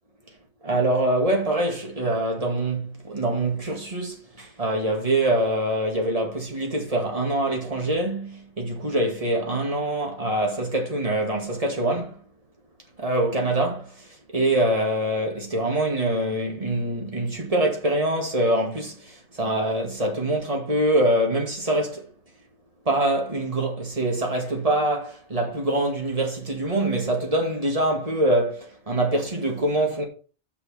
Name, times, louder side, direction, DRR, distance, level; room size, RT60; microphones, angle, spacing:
voice 1, 0.6-12.2 13.0-22.1 22.9-30.0, right 1 dB, 30° right, 2.2 m, -24 dB
6.4 x 5.9 x 5.6 m
omnidirectional pair, 1.2 m